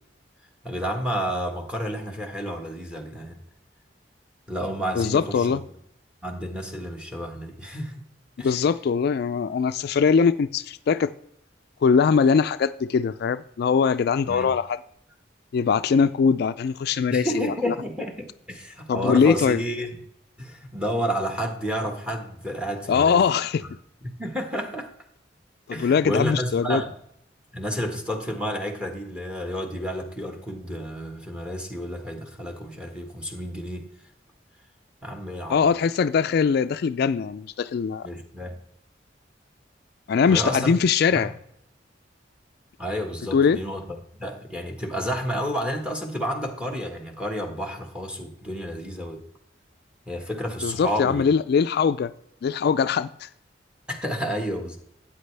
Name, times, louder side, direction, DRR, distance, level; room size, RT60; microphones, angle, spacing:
voice 1, 0.6-3.4 4.5-5.6 6.2-8.0 8.4-8.6 14.3-14.5 17.1-20.0 20.4-23.2 23.6-23.7 24.0-24.9 25.7-26.9 27.5-33.9 35.0-35.7 38.0-38.6 40.3-40.8 41.1-41.3 42.8-43.8 44.2-49.2 50.1-51.2 53.9-54.8, equal, 5° right, 1.5 m, -30 dB
voice 2, 5.0-5.6 8.4-11.1 11.8-14.8 15.5-17.7 18.9-19.6 22.9-23.6 25.7-26.8 35.5-38.1 40.1-41.3 43.3-43.6 50.6-52.1 52.4-53.3, left 6 dB, 60° left, 0.3 m, -21 dB
13.5 x 8.6 x 3.3 m
head